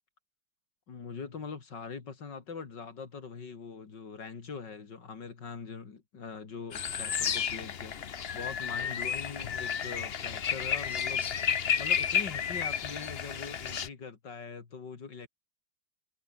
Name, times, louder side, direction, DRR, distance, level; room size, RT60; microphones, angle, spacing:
voice 1, 0.9-11.3 11.8-15.3, left 5 dB, 65° left, 3.2 m, -42 dB
sound 1, 6.7-13.9, left 7 dB, 45° left, 0.8 m, -32 dB
omnidirectional pair, 2.0 m